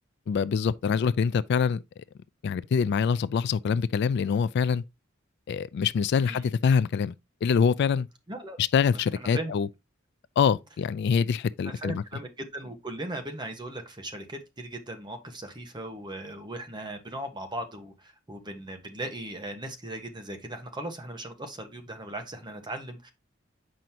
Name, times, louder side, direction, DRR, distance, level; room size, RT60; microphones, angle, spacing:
voice 1, 0.3-1.8 2.4-4.8 5.5-7.1 7.4-8.1 8.6-9.7 10.4-12.0, left 6 dB, 55° left, 0.3 m, -25 dB
voice 2, 6.1-6.6 8.3-8.6 9.1-9.5 11.6-23.1, right 1 dB, 20° right, 1.2 m, -38 dB
7.6 x 5.2 x 2.8 m
head